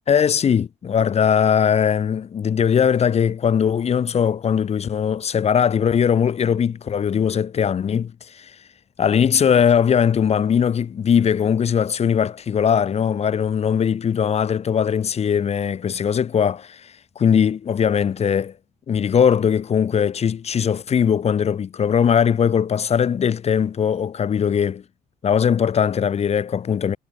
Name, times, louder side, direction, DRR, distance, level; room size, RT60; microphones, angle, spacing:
voice 1, 0.1-8.5 9.0-18.5 18.9-24.8 25.2-27.0, left 7 dB, 40° left, 1.2 m, -20 dB
cardioid pair, 110°, 17 cm